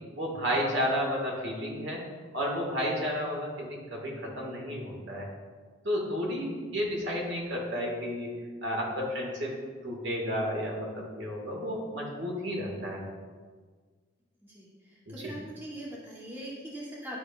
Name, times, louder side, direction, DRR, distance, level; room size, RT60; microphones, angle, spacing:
voice 1, 0.1-2.0 2.3-5.3 5.8-8.3 8.6-9.5 9.8-13.0 15.1-15.4, equal, 60° right, -2 dB, 1.7 m, -32 dB
voice 2, 14.4-17.2, right 1 dB, 10° right, -5 dB, 0.9 m, -42 dB
11.0 x 5.1 x 2.4 m, 1.5 s
head